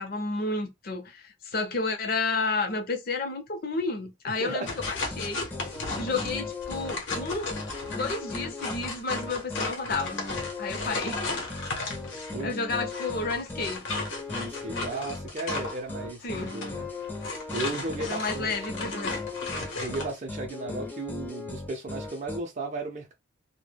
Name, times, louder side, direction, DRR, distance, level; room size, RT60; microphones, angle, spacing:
voice 1, 0.0-5.6 6.0-10.2 10.6-11.3 12.4-13.9 16.2-16.6 18.0-19.2, left 3 dB, 50° left, 0.6 m, -31 dB
voice 2, 4.3-4.7 10.8-11.3 12.3-12.6 14.3-16.9 17.5-18.5 19.8-23.1, right 2 dB, 40° right, 0.5 m, -35 dB
sound 1, 4.7-12.4 12.9-20.1, left 3 dB, 80° left, 0.8 m, -35 dB
sound 2, 4.8-22.4, left 3 dB, 10° left, 0.5 m, -38 dB
2.1 x 2.1 x 3.2 m
head